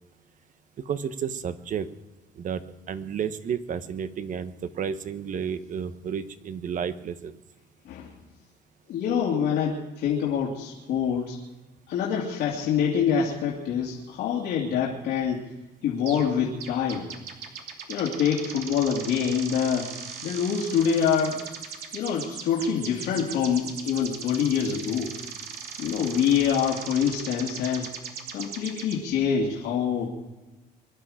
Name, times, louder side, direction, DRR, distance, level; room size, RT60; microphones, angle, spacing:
voice 1, 0.8-1.9 2.4-7.4, right 7 dB, 50° right, 11 dB, 1.2 m, -32 dB
voice 2, 8.9-11.4 11.9-15.5 15.8-17.1 17.9-19.9 20.2-21.5 21.9-25.1 25.8-27.9 28.3-30.1, left 7 dB, 75° left, -3 dB, 2.8 m, -25 dB
sound 1, 16.1-16.3 16.6-29.0, right 6 dB, 70° right, 2.8 m, -39 dB
23.5 x 11.5 x 5.0 m, 1.1 s
cardioid pair, 110°, 17 cm